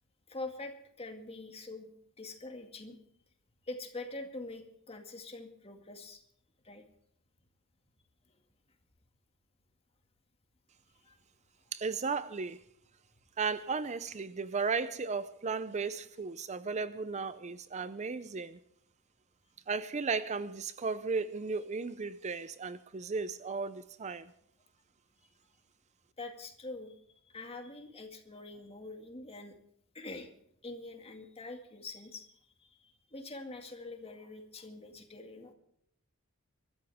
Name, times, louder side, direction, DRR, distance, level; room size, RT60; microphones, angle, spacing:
voice 1, 0.3-3.0 3.7-6.2 6.6-6.8 11.0-11.2 26.2-27.0 27.2-29.6 29.9-30.3 30.6-32.3 32.6-35.5, left 2 dB, 25° left, 2.2 m, -45 dB
voice 2, 11.7-12.6 13.4-18.6 19.7-24.3, right 4 dB, 30° right, 0.5 m, -35 dB
24.0 x 13.5 x 3.6 m
head